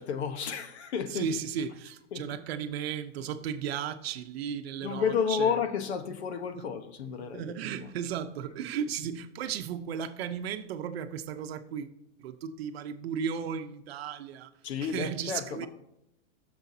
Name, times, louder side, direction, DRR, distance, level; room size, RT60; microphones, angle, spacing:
voice 1, 0.0-1.3 2.1-2.2 4.8-7.9 14.6-15.7, left 7 dB, 60° left, 1.2 m, -31 dB
voice 2, 1.1-5.6 6.5-6.6 7.3-11.9 12.2-14.5 14.8-15.7, right 8 dB, 55° right, 0.9 m, -35 dB
15.0 x 7.0 x 2.8 m
hypercardioid pair, 160°, 37 cm